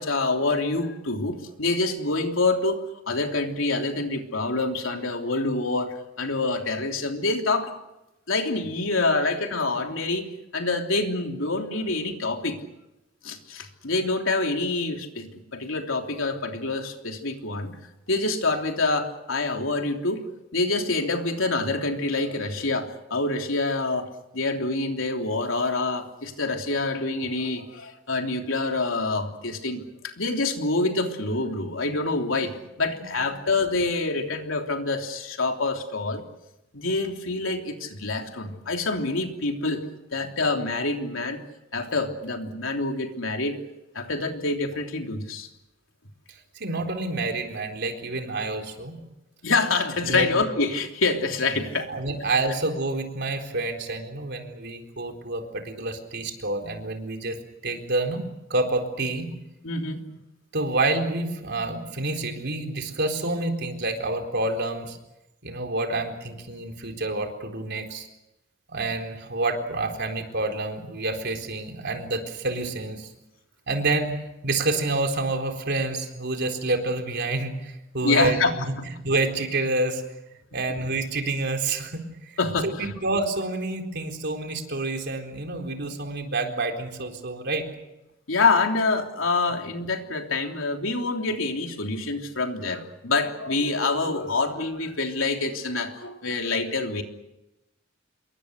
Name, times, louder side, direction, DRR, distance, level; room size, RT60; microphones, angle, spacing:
voice 1, 0.0-7.7 8.3-10.3 10.5-12.6 13.2-17.7 18.1-20.3 20.5-36.2 36.7-39.8 40.1-41.4 41.7-43.6 43.9-45.5 49.4-51.9 59.6-60.0 78.0-78.5 82.4-82.9 88.3-97.0, left 3 dB, 85° left, 3 dB, 3.3 m, -26 dB
voice 2, 32.9-33.5 46.3-49.0 50.0-50.3 51.9-57.4 57.6-58.2 58.5-59.3 60.5-65.0 65.4-68.1 68.7-73.1 73.7-78.8 79.0-80.0 80.5-87.7, right 2 dB, 60° right, 3 dB, 4.1 m, -28 dB
27.5 x 23.0 x 6.5 m, 0.92 s
head